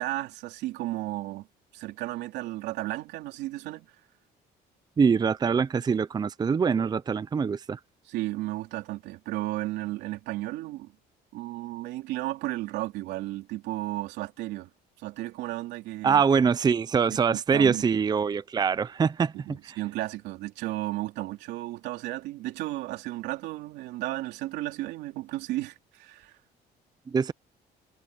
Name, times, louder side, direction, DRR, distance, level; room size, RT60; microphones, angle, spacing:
voice 1, 0.0-1.5 1.7-3.9 8.1-10.9 11.3-14.7 15.0-16.2 17.3-17.8 19.3-26.4, right 17 dB, 90° right, 3.2 m, -34 dB
voice 2, 5.0-7.8 16.0-19.8 27.1-27.3, right 6 dB, 25° right, 0.5 m, -24 dB
cardioid pair, 110°, 17 cm